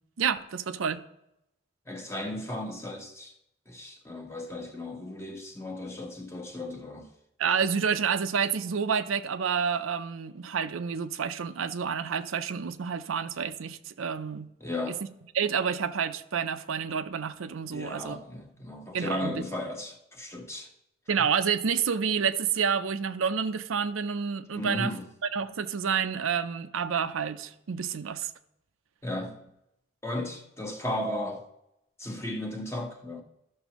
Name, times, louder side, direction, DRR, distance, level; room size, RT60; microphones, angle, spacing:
voice 1, 0.2-1.0 7.4-14.5 15.3-18.2 18.9-19.5 21.1-24.9 25.3-28.3, right 6 dB, 90° right, 0.5 m, -29 dB
voice 2, 1.9-3.3 3.7-7.1 14.6-15.0 17.7-20.7 21.2-21.3 24.5-25.1 29.0-29.4 30.0-31.4 32.0-33.2, left 1 dB, 15° left, 1.0 m, -35 dB
13.5 x 6.2 x 3.0 m
head